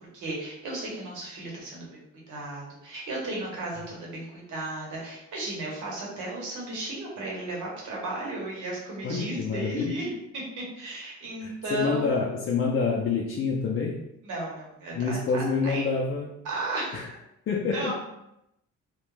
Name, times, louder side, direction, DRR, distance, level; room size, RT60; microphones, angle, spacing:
voice 1, 0.0-12.1 14.2-15.8 16.4-17.1 17.7-17.9, right 2 dB, 80° right, -4 dB, 1.1 m, -35 dB
voice 2, 9.0-9.9 11.4-14.0 14.9-16.3 16.9-17.1 17.5-17.9, left 4 dB, 45° left, -3 dB, 0.4 m, -27 dB
2.4 x 2.1 x 3.0 m, 0.84 s
cardioid pair, 90°, 30 cm